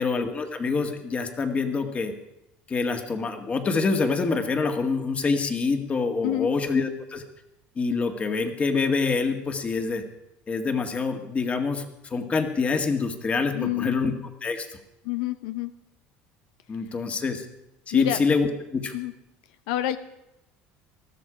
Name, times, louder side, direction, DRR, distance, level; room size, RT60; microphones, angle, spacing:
voice 1, 0.0-2.1 2.7-7.2 7.8-10.0 10.5-14.1 14.4-14.7 16.7-17.5 17.9-18.9, left 4 dB, 30° left, 6 dB, 1.9 m, -26 dB
voice 2, 13.5-14.0 15.0-15.7 17.9-18.2 18.9-19.1 19.7-20.0, left 14 dB, 85° left, 11 dB, 0.8 m, -27 dB
20.0 x 13.0 x 5.1 m, 0.88 s
supercardioid pair, 110°, 5 cm